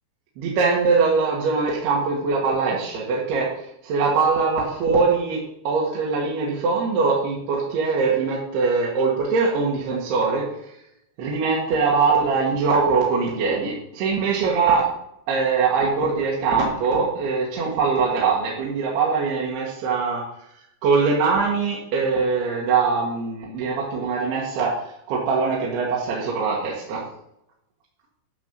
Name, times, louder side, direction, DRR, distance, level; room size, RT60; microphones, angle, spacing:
voice 1, 0.4-3.5 3.8-10.4 11.2-14.9 15.3-20.2 20.8-24.7 25.1-27.0, right 4 dB, 60° right, -4 dB, 3.4 m, -22 dB
12.5 x 5.0 x 6.7 m, 0.77 s
omnidirectional pair, 5.8 m